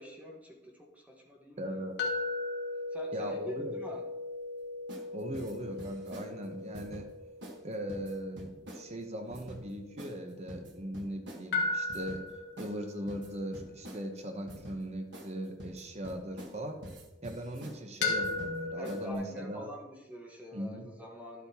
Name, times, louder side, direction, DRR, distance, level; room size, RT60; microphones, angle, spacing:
voice 1, 0.0-1.8 2.9-4.0 18.8-21.5, equal, 10° right, -1 dB, 1.3 m, -45 dB
voice 2, 1.6-2.0 3.1-3.8 5.1-7.1 7.6-12.2 12.6-16.8 17.2-19.7 20.5-20.9, equal, 40° right, 4 dB, 1.0 m, -39 dB
sound 1, 2.0-10.9 11.5-16.6 18.0-19.1, left 3 dB, 70° left, 1.4 m, -38 dB
sound 2, 4.9-5.1 5.3-6.3 6.7-7.0 7.4-7.6 7.9-8.8 9.3-9.6 10.0-10.2 10.5-11.4 11.9-12.2 12.6-12.8 13.1-14.0 14.5-14.8 15.1-15.3 15.6-16.6 16.8-17.8 18.2-18.6 18.8-19.2, right 1 dB, 85° right, 1.4 m, -46 dB
11.5 x 8.2 x 2.9 m, 0.99 s
head